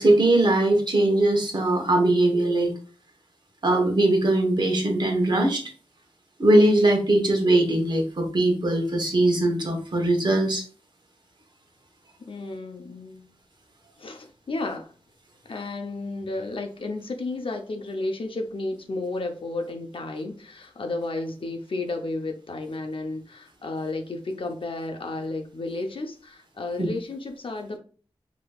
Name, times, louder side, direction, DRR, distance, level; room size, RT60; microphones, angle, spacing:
voice 1, 0.0-2.7 3.6-5.6 6.4-10.6 26.8-26.9, right 1 dB, 45° right, 3 dB, 1.1 m, -21 dB
voice 2, 12.3-13.3 14.0-14.9 15.4-27.8, left 2 dB, 60° left, 4 dB, 0.7 m, -32 dB
5.0 x 3.0 x 2.3 m, 0.39 s
wide cardioid pair, 80°, 10 cm